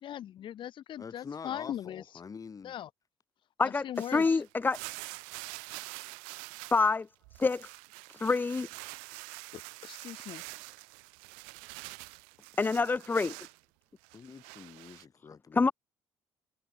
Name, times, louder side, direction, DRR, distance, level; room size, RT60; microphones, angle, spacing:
voice 1, 0.0-2.0 2.6-2.9 3.6-4.4 9.5-10.4, left 11 dB, 55° left, 0.9 m, -40 dB
voice 2, 1.0-2.7 14.1-15.7, left 5 dB, 35° left, 3.8 m, -46 dB
sound 1, 3.9-6.9 7.2-13.6 14.0-15.0, right 40 dB or more, 85° right, 0.6 m, -46 dB
voice 3, 4.1-4.8 6.7-7.1 7.4-7.7 8.2-8.7 12.6-13.3 15.5-15.7, left 4 dB, 20° left, 0.4 m, -26 dB
supercardioid pair, 70°, 10 cm